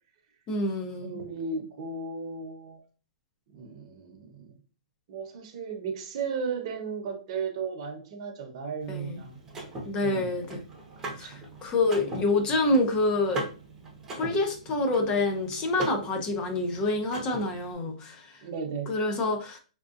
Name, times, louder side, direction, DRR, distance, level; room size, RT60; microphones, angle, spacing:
voice 1, 0.5-1.2 8.9-9.2 9.8-10.6 11.2-13.4 14.1-18.3 18.9-19.6, left 2 dB, 20° left, 5 dB, 0.5 m, -27 dB
voice 2, 1.0-2.8 3.5-4.5 5.1-9.4 10.0-10.5 11.0-11.4 18.4-18.9, right 5 dB, 40° right, 2 dB, 0.8 m, -35 dB
Car / Mechanisms, 8.8-17.7, right 1 dB, 10° right, 0.8 m, -40 dB
3.7 x 2.4 x 2.4 m, 0.36 s
hypercardioid pair, 160°, 4 cm